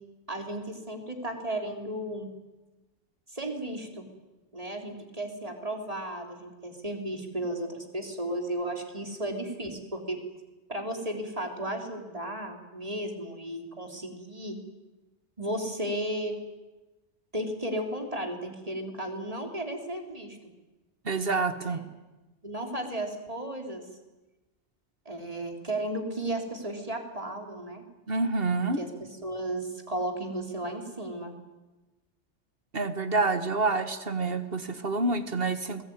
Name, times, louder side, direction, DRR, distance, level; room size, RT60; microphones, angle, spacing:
voice 1, 0.3-2.3 3.3-4.1 4.5-10.2 10.7-14.6 15.4-16.4 17.3-20.4 21.6-21.8 22.4-23.9 25.1-27.8 28.8-28.9 29.2-31.3, right 1 dB, 30° right, 3 dB, 3.9 m, -34 dB
voice 2, 21.1-21.8 28.1-28.8 32.7-35.8, right 3 dB, 55° right, 10 dB, 1.9 m, -27 dB
29.0 x 21.0 x 9.7 m, 1.1 s
omnidirectional pair, 1.2 m